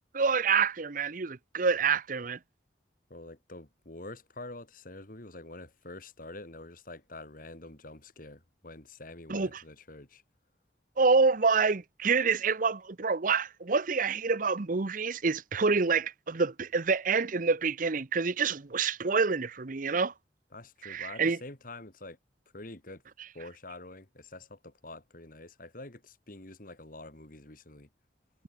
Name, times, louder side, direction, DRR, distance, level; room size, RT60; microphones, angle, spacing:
voice 1, 0.1-2.4 9.3-9.6 11.0-20.1 20.8-21.4, right 4 dB, 50° right, 0.8 m, -27 dB
voice 2, 3.1-10.2 20.5-22.2 22.5-23.0 23.3-27.9, left 2 dB, 50° left, 3.0 m, -46 dB
head